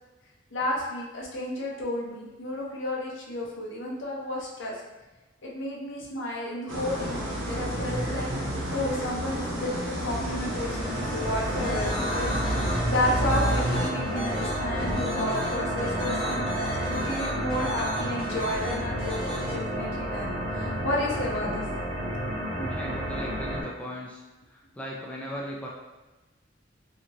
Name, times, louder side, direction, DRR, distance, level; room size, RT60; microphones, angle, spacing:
voice 1, 0.5-4.7 5.4-8.3 8.7-16.5 16.9-21.6 22.6-22.9, left 1 dB, 75° left, -3 dB, 0.7 m, -32 dB
sound 1, 6.7-13.9, right 1 dB, 70° right, 0.7 m, -30 dB
sound 2, 9.9-23.6, equal, 35° right, 0.6 m, -31 dB
sound 3, 11.6-19.5, equal, 30° left, 0.7 m, -35 dB
voice 2, 22.6-24.2 24.7-25.7, equal, 5° left, -3 dB, 0.3 m, -37 dB
2.8 x 2.5 x 2.8 m, 1.2 s
head